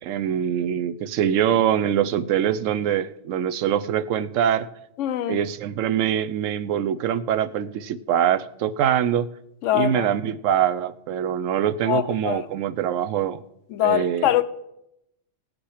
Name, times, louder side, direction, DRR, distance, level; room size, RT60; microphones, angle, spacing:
voice 1, 0.0-4.7 5.3-9.3 9.7-13.4 13.8-14.3, right 9 dB, 90° right, 1.0 m, -23 dB
voice 2, 5.0-5.4 9.6-10.1 11.9-12.4 13.7-14.4, left 12 dB, 80° left, 0.9 m, -23 dB
17.5 x 6.1 x 4.9 m
omnidirectional pair, 1.3 m